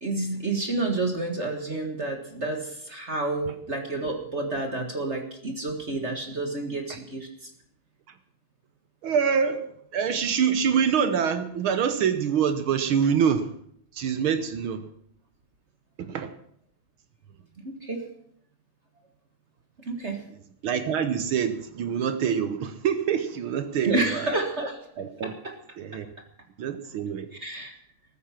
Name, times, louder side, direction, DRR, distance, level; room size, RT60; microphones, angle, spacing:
voice 1, 0.0-7.5 17.6-18.0 19.8-20.2 23.8-24.8 25.2-25.5 27.4-27.7, right 2 dB, 30° right, 4 dB, 1.3 m, -30 dB
voice 2, 9.0-9.7 9.9-13.5 13.9-14.9 16.0-16.4 20.6-24.3 25.0-25.3 25.8-26.1 26.6-27.3, right 7 dB, 70° right, 10 dB, 1.3 m, -25 dB
14.0 x 14.0 x 5.9 m, 0.68 s
omnidirectional pair, 3.4 m